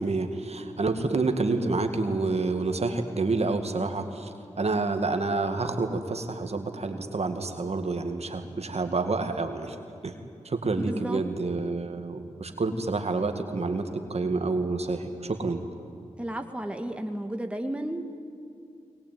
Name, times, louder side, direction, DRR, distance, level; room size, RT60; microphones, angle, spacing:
voice 1, 0.0-9.8 10.0-10.1 10.4-15.6, right 3 dB, 55° right, 6 dB, 2.1 m, -28 dB
voice 2, 10.8-11.2 16.2-18.0, right 1 dB, 10° right, 5 dB, 1.9 m, -33 dB
22.0 x 20.0 x 9.3 m, 2.5 s
cardioid pair, 40°, 13 cm